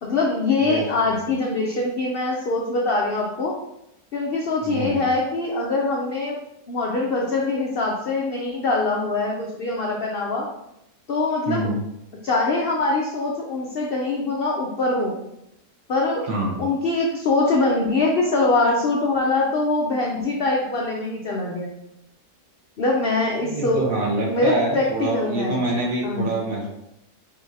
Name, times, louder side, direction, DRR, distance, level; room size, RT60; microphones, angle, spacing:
voice 1, 0.0-3.5 4.1-6.4 6.7-10.5 11.1-11.7 12.2-15.2 15.9-21.7 22.8-23.8 24.3-25.6 26.0-26.3, left 2 dB, 85° left, -1 dB, 0.5 m, -23 dB
voice 2, 0.6-1.1 4.6-5.0 11.5-11.8 16.3-16.6 23.4-26.7, right 2 dB, 60° right, -3 dB, 1.5 m, -26 dB
5.1 x 2.8 x 2.7 m, 0.83 s
omnidirectional pair, 1.7 m